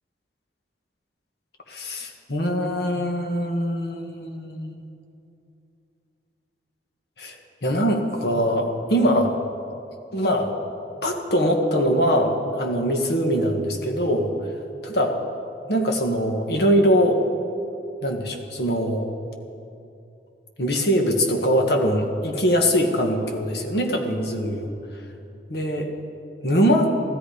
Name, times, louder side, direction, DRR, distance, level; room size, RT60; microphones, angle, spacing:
voice 1, 1.7-4.8 7.2-7.3 7.6-9.3 10.1-10.5 11.0-14.3 14.8-15.1 15.7-17.2 18.0-19.1 20.6-24.7 25.5-25.9 26.4-26.9, equal, 65° left, 3 dB, 1.6 m, -22 dB
15.5 x 13.5 x 5.0 m, 2.7 s
head